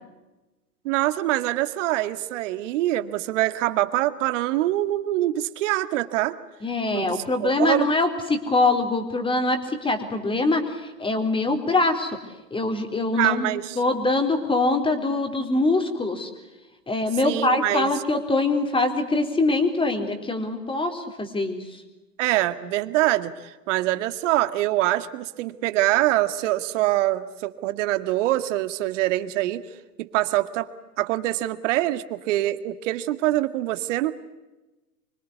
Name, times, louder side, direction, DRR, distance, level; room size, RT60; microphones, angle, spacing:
voice 1, 0.8-6.4 6.9-7.9 13.1-13.8 17.2-17.9 22.2-29.6 30.0-30.7 31.0-34.1, right 16 dB, 50° right, 12 dB, 2.0 m, -24 dB
voice 2, 6.6-12.2 12.5-13.5 13.8-16.3 16.9-21.6, left 2 dB, 10° left, 6 dB, 4.1 m, -23 dB
26.0 x 24.5 x 8.2 m, 1.1 s
hypercardioid pair, 105°, 47 cm